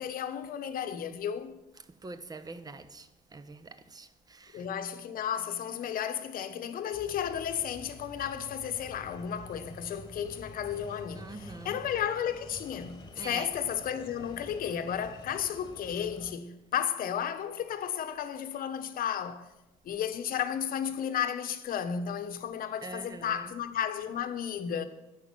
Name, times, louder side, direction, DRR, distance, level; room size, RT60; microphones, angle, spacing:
voice 1, 0.0-1.6 4.5-19.5 19.8-24.8, left 9 dB, 60° left, 1.0 m, -33 dB
voice 2, 2.0-4.7 11.1-11.8 13.2-13.5 22.8-23.4, right 3 dB, 20° right, 0.9 m, -44 dB
sound 1, 6.9-16.3, left 2 dB, 25° left, 1.5 m, -49 dB
10.5 x 9.4 x 6.2 m
cardioid pair, 110°, 17 cm